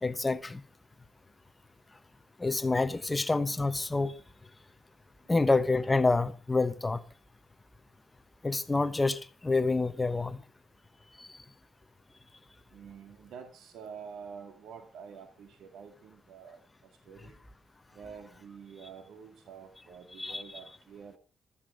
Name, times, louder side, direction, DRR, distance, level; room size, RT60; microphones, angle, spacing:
voice 1, 0.0-0.6 2.4-4.1 5.3-7.0 8.4-10.4 11.2-11.3 20.2-20.4, left 3 dB, 15° left, 1.1 m, -27 dB
voice 2, 12.7-16.6 17.1-17.4 17.9-21.2, right 6 dB, 80° right, 2.3 m, -48 dB
14.5 x 14.0 x 4.9 m
cardioid pair, 115°, 0 cm